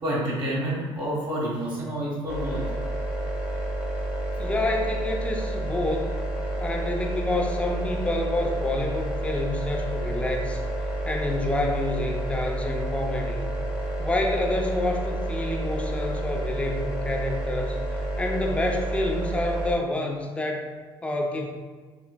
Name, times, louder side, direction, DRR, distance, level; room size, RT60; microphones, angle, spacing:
voice 1, 0.0-2.6, right 1 dB, 40° right, -5 dB, 1.2 m, -28 dB
sound 1, 2.3-19.7, right 1 dB, 10° right, 0.9 m, -30 dB
voice 2, 4.4-6.2 6.6-10.6 11.0-13.5 14.0-20.7 21.0-21.5, left 1 dB, 10° left, 1 dB, 0.5 m, -28 dB
5.7 x 2.1 x 2.3 m, 1.4 s
supercardioid pair, 95°, 11 cm